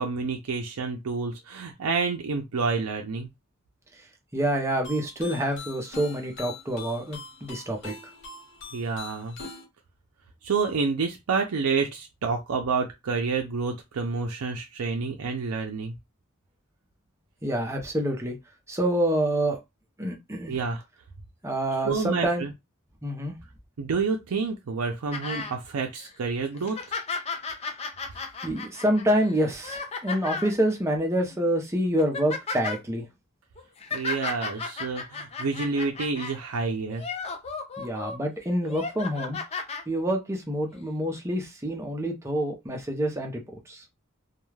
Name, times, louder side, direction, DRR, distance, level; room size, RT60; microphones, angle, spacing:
voice 1, 0.0-3.3 8.7-9.3 10.4-15.9 20.5-20.8 21.8-22.5 23.8-26.8 33.9-37.1, right 4 dB, 85° right, 0.5 m, -28 dB
voice 2, 4.3-7.9 17.4-18.4 18.7-19.6 20.0-20.5 21.4-22.5 23.0-23.3 28.4-33.1 37.8-39.4 39.9-43.4 43.7-43.8, right 1 dB, 15° right, 0.6 m, -27 dB
sound 1, 4.8-9.7, left 4 dB, 60° left, 0.7 m, -43 dB
sound 2, 25.1-25.5 26.0-26.1 26.6-30.5 31.3-31.5 31.8-32.8 33.6-36.4 36.9-38.2 38.6-39.8 40.7-40.8, left 4 dB, 30° left, 0.4 m, -34 dB
2.3 x 2.3 x 3.2 m
head